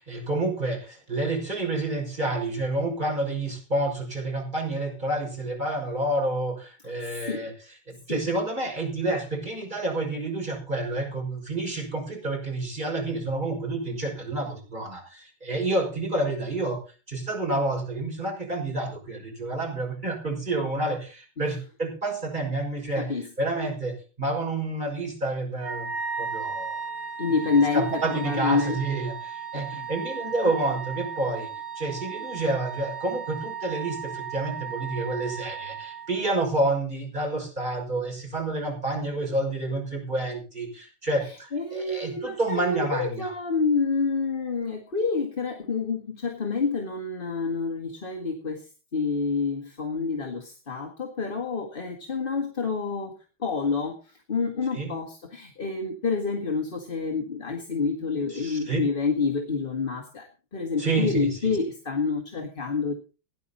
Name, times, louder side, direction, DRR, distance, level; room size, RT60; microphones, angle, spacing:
voice 1, 0.0-7.5 7.9-16.8 17.1-23.1 23.4-25.9 26.2-26.9 27.7-31.5 31.7-43.3 54.7-54.9 58.3-58.8 60.8-61.4, right 2 dB, 20° right, 0 dB, 6.2 m, -29 dB
voice 2, 22.9-23.3 27.2-28.8 29.5-29.9 30.4-30.5 41.2-53.1 53.4-62.9, left 4 dB, 25° left, 2 dB, 1.9 m, -28 dB
Wind instrument woodwind instrument, 25.6-36.4, right 6 dB, 85° right, 7.1 m, -35 dB
18.5 x 11.0 x 4.2 m, 0.34 s
omnidirectional pair, 2.2 m